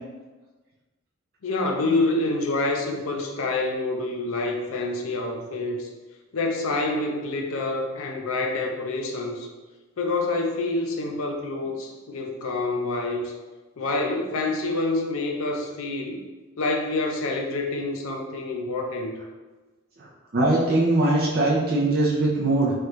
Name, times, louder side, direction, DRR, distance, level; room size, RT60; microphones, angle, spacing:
voice 1, 1.4-5.9 6.3-9.5 10.0-13.3 13.8-16.2 16.6-19.1, left 2 dB, 70° left, 2 dB, 0.5 m, -27 dB
voice 2, 20.3-22.7, right 2 dB, 45° right, -5 dB, 0.5 m, -21 dB
3.2 x 2.5 x 3.0 m, 1.3 s
head